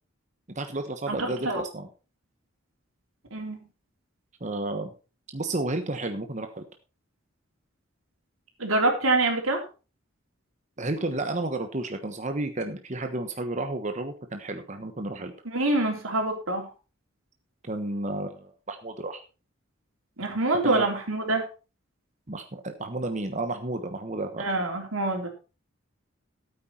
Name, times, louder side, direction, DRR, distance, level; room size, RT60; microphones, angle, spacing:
voice 1, 0.5-1.9 4.4-4.9 5.3-6.6 10.8-15.3 17.6-19.2 20.6-20.9 22.3-24.5, right 2 dB, 35° right, 6 dB, 1.2 m, -32 dB
voice 2, 1.1-1.6 3.3-3.6 8.6-9.6 15.5-16.7 20.2-21.5 24.4-25.3, right 2 dB, 90° right, 3 dB, 3.6 m, -26 dB
13.5 x 8.9 x 4.4 m, 0.33 s
head